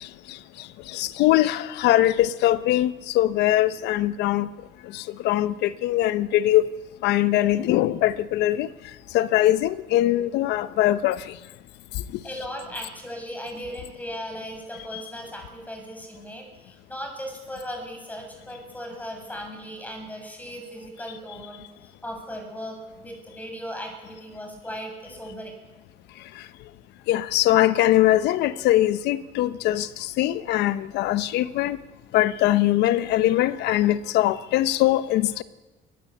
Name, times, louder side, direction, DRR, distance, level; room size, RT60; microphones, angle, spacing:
voice 1, 0.9-4.5 4.9-6.6 7.0-8.7 9.1-11.2 14.9-15.0 27.1-31.8 32.1-35.4, left 14 dB, 85° left, 1.0 m, -21 dB
voice 2, 12.2-21.6 22.0-25.5, equal, 10° left, 7.4 m, -37 dB
23.5 x 20.0 x 8.6 m
cardioid pair, 110°, 17 cm